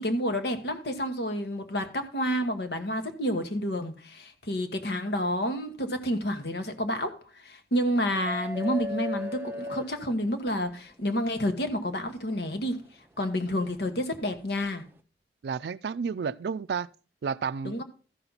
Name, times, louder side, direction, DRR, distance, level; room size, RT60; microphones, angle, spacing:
voice 1, 0.0-7.1 7.4-12.8 13.2-14.8 17.6-17.8, equal, 70° left, 1.2 m, -29 dB
sound 1, 8.3-10.7 12.3-12.4 14.2-14.4, left 1 dB, 10° right, 0.5 m, -35 dB
voice 2, 15.4-16.9 17.2-17.8, right 6 dB, 70° right, 0.3 m, -31 dB
13.5 x 5.9 x 3.9 m
head